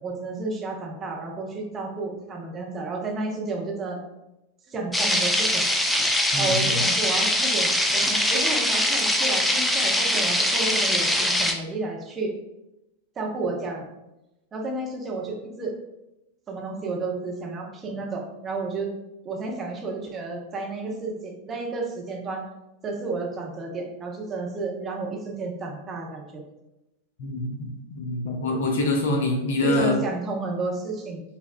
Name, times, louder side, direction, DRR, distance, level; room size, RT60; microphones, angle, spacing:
voice 1, 0.0-4.0 4.7-5.6 6.4-12.3 13.2-13.9 14.5-15.7 16.5-18.9 19.2-22.4 22.8-26.4 29.6-31.2, right 3 dB, 25° right, 0 dB, 0.7 m, -31 dB
sound 1, 4.9-11.5, left 1 dB, 5° left, 0.4 m, -22 dB
voice 2, 6.3-6.8 27.2-30.0, left 2 dB, 60° left, 2 dB, 0.6 m, -25 dB
5.2 x 2.4 x 2.2 m, 0.94 s
figure-of-eight pair, 90°, 0 cm